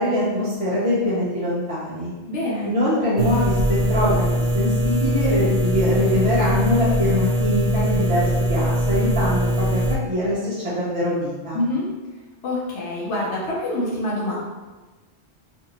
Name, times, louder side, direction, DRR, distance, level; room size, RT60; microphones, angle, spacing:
voice 1, 0.0-2.1 2.6-3.5 3.9-4.2 4.5-10.4 10.6-11.6, left 1 dB, 40° right, -9 dB, 0.5 m, -23 dB
voice 2, 2.3-2.7 11.5-11.9 12.4-14.4, left 1 dB, 80° left, -5 dB, 1.0 m, -25 dB
sound 1, 3.2-9.9, equal, 80° right, 0.9 m, -21 dB
2.7 x 2.5 x 2.8 m, 1.2 s
omnidirectional pair, 1.2 m